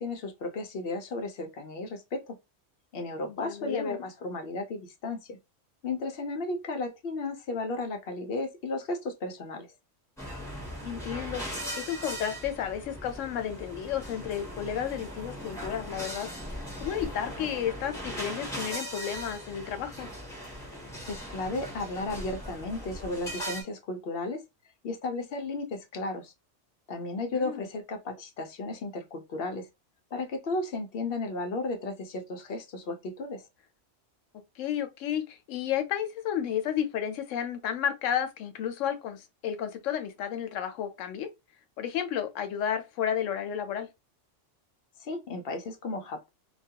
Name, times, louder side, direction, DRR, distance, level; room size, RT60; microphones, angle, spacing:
voice 1, 0.0-2.4 2.9-5.4 5.8-9.7 21.1-24.4 24.8-26.3 26.9-29.7 30.1-33.4 45.0-46.3, left 2 dB, 60° left, 0.7 m, -34 dB
voice 2, 3.3-4.0 10.8-16.3 16.8-20.1 27.3-27.7 34.6-41.3 41.8-43.9, left 9 dB, 85° left, 0.9 m, -32 dB
sound 1, 10.2-23.6, equal, 5° left, 0.8 m, -39 dB
2.3 x 2.2 x 2.7 m
omnidirectional pair, 1.3 m